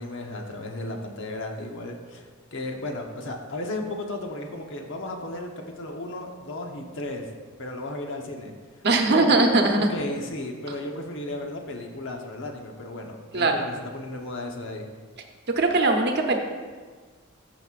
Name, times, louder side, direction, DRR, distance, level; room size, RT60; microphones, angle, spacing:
voice 1, 0.0-7.3 7.6-8.5 9.0-9.5 9.7-14.9, left 1 dB, 60° left, 2 dB, 1.0 m, -34 dB
voice 2, 8.8-9.9 13.3-13.7 15.6-16.4, right 2 dB, 50° right, 3 dB, 0.9 m, -20 dB
14.0 x 6.2 x 2.5 m, 1.5 s
head